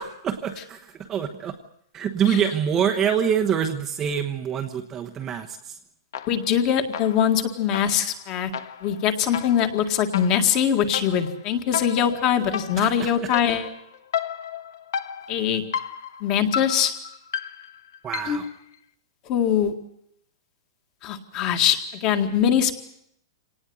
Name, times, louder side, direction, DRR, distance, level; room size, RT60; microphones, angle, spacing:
voice 1, 0.0-1.6 1.9-5.6 12.8-13.1 18.0-18.4, right 8 dB, 15° right, 4 dB, 1.1 m, -25 dB
sound 1, 6.1-6.6 6.9-18.5, left 8 dB, 60° left, 1.5 m, -34 dB
voice 2, 6.3-8.5 8.8-13.7 15.3-15.6 16.2-16.9 18.3-18.4 19.3-19.7 21.0-22.7, left 8 dB, 25° left, 7 dB, 2.0 m, -22 dB
26.0 x 19.0 x 8.0 m, 0.72 s
supercardioid pair, 175°, 2 cm